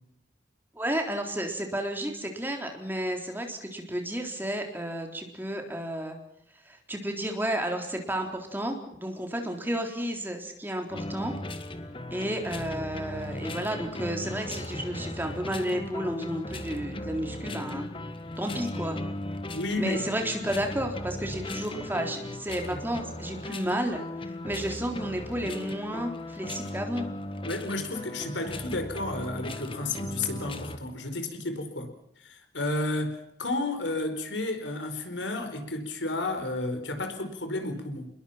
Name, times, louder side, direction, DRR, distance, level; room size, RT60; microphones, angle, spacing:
voice 1, 0.7-6.2 6.6-11.3 12.1-17.9 18.4-19.0 19.8-24.0 24.4-27.1, right 1 dB, 10° right, 3 dB, 3.8 m, -32 dB
sound 1, 10.9-30.8, left 1 dB, 30° left, 1.7 m, -37 dB
voice 2, 19.5-20.1 27.4-31.9 32.2-38.1, left 2 dB, 85° left, 7 dB, 4.8 m, -32 dB
29.5 x 21.5 x 5.9 m, 0.73 s
head